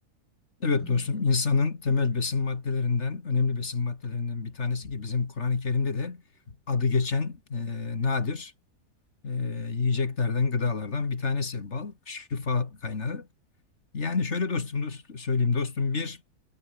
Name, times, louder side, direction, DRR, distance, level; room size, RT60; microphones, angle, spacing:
voice 1, 0.6-6.2 6.7-8.5 9.2-13.3 13.9-16.2, left 4 dB, 45° left, 2.3 m, -27 dB
sound 1, 0.8-3.2, equal, 10° left, 7.9 m, -54 dB
omnidirectional pair, 1.7 m